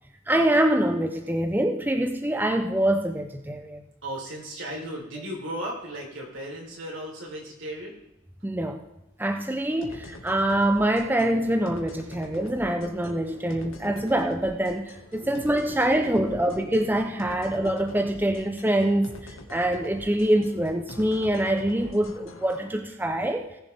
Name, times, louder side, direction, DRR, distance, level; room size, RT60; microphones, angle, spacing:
voice 1, 0.3-3.8 8.4-8.8 9.2-23.4, right 1 dB, 10° right, 4 dB, 0.8 m, -25 dB
voice 2, 4.0-8.0 12.1-12.6 13.5-14.0 15.2-15.3 15.7-16.9, right 1 dB, 75° right, -1 dB, 4.1 m, -37 dB
sound 1, 9.8-22.7, left 1 dB, 90° left, 2.0 m, -45 dB
19.0 x 7.2 x 3.6 m, 0.89 s
head